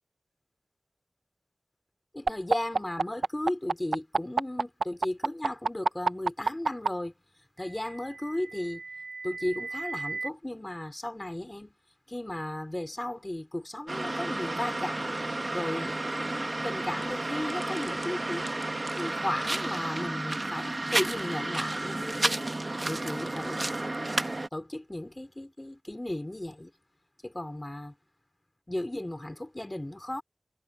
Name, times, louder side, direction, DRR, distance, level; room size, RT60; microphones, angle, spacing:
voice 1, 2.1-7.1 7.6-8.8 9.2-11.8 12.1-15.2 15.5-18.4 19.0-22.5 22.9-23.9 24.5-26.7 27.2-27.9 28.7-30.2, left 1 dB, 25° left, 4.6 m, -35 dB
sound 1, 2.3-6.9 8.0-10.3, right 4 dB, 85° right, 1.0 m, -29 dB
sound 2, 13.9-24.5, right 2 dB, 40° right, 1.4 m, -32 dB
cardioid pair, 40°, 0 cm